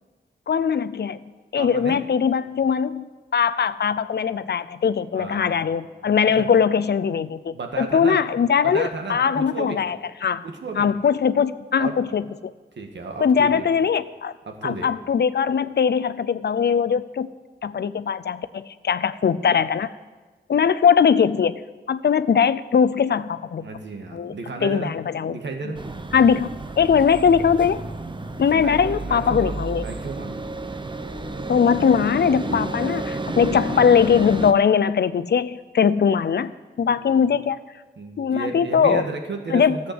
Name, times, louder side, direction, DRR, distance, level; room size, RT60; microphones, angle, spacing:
voice 1, 0.5-1.2 1.5-10.4 10.8-12.2 13.2-14.3 14.6-17.3 17.6-19.9 20.5-21.6 21.9-23.7 24.1-24.3 24.6-25.4 26.1-26.5 26.8-27.8 28.4-29.9 31.5-36.5 36.8-37.6 38.2-39.0 39.5-39.9, left 7 dB, 65° left, 14 dB, 0.5 m, -20 dB
voice 2, 1.6-2.0 5.1-5.6 6.4-6.5 7.5-8.2 8.6-9.8 10.4-10.9 11.8-12.1 12.8-13.7 14.5-14.9 23.6-24.9 25.3-25.8 28.5-30.4 32.4-33.0 37.1-37.3 38.0-39.9, right 3 dB, 80° right, 3 dB, 1.8 m, -33 dB
sound 1, 25.7-34.5, right 2 dB, 25° right, 0.8 m, -31 dB
13.5 x 8.1 x 7.9 m, 1.3 s
wide cardioid pair, 85°, 18 cm